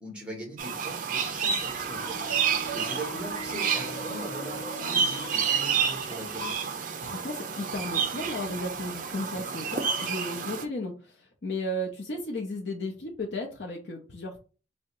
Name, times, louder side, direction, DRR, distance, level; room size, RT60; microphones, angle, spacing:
voice 1, 0.0-2.2 2.7-6.5, right 1 dB, 5° right, 1 dB, 1.3 m, -40 dB
sound 1, 0.6-10.6, right 6 dB, 45° right, 0.4 m, -30 dB
sound 2, 1.2-5.6 5.9-6.5, right 2 dB, 10° left, 1.8 m, -42 dB
Wind instrument woodwind instrument, 1.8-6.0, left 1 dB, 40° left, 0.3 m, -44 dB
voice 2, 7.0-14.4, left 1 dB, 70° left, 0 dB, 0.7 m, -34 dB
3.7 x 2.1 x 4.4 m, 0.35 s
head